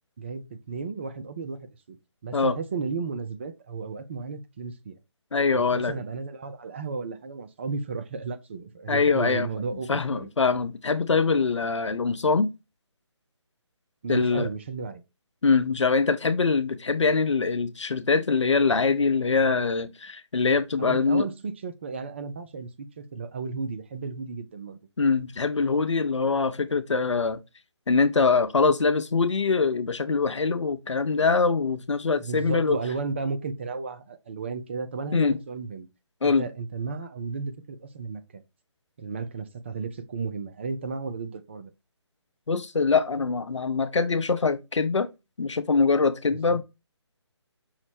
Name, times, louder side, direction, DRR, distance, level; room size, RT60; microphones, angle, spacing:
voice 1, 0.2-1.6 1.9-2.0 2.2-4.9 5.5-10.3 14.0-15.0 20.8-24.8 32.2-35.9 36.2-38.4 39.0-41.7 46.3-46.6, right 4 dB, 25° right, 0.4 m, -34 dB
voice 2, 5.3-6.0 8.9-9.5 9.9-12.5 14.1-14.5 15.4-21.3 25.0-27.4 27.9-32.8 35.1-35.4 36.2-36.5 42.5-45.1 45.4-46.6, left 4 dB, 80° left, 0.6 m, -23 dB
5.7 x 2.0 x 4.4 m
figure-of-eight pair, 155°, 15 cm